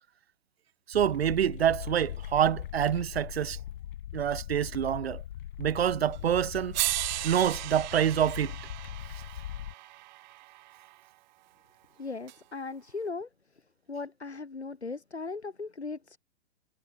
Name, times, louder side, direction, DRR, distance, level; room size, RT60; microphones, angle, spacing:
sound 1, 0.9-9.7, left 12 dB, 55° left, 1.4 m, -40 dB
voice 1, 0.9-3.6 4.1-5.2 5.6-6.8 7.2-8.5, right 9 dB, 70° right, 0.8 m, -26 dB
sound 2, 6.1-6.2 6.7-10.9 12.3-12.4, right 19 dB, 45° right, 2.4 m, -36 dB
voice 2, 12.0-13.3 13.9-16.2, left 4 dB, 85° left, 3.9 m, -38 dB
figure-of-eight pair, 115°, 32 cm